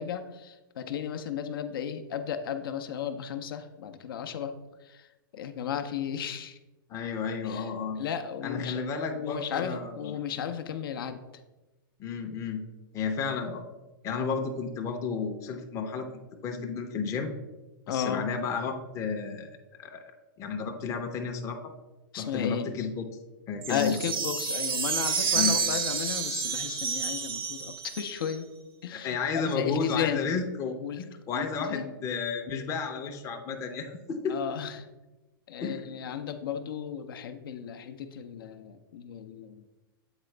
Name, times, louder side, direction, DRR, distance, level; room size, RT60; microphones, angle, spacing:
voice 1, 0.0-6.6 7.4-7.7 8.0-8.8 9.1-11.2 17.9-18.3 22.1-22.7 23.7-28.5 28.8-30.3 30.8-31.1 31.3-31.9 34.3-34.9 35.5-39.7, left 8 dB, 70° left, 8 dB, 0.6 m, -34 dB
voice 2, 6.9-8.0 8.4-10.2 12.0-13.6 14.0-17.3 17.9-19.5 19.8-20.0 20.4-21.6 22.2-23.1 23.5-24.0 25.3-25.6 28.9-34.4 35.6-35.8, left 5 dB, 25° left, 4 dB, 0.6 m, -32 dB
sound 1, 23.6-28.4, right 6 dB, 90° right, 0.9 m, -29 dB
8.1 x 4.0 x 3.2 m, 1.1 s
hypercardioid pair, 125°, 12 cm